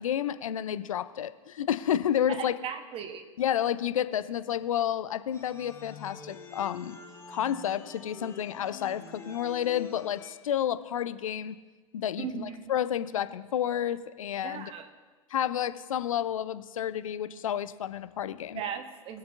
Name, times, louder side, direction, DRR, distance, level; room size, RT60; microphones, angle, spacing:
voice 1, 0.0-2.5 3.4-7.0 7.3-11.6 11.9-14.7 15.3-18.6, left 10 dB, 65° left, 13 dB, 0.5 m, -30 dB
voice 2, 2.3-3.2 12.2-12.7 14.4-14.9 18.5-19.2, right 7 dB, 30° right, 7 dB, 1.1 m, -37 dB
sound 1, 5.3-10.3, left 5 dB, 15° left, 1.2 m, -46 dB
21.0 x 7.1 x 2.6 m, 1.3 s
figure-of-eight pair, 90°, 18 cm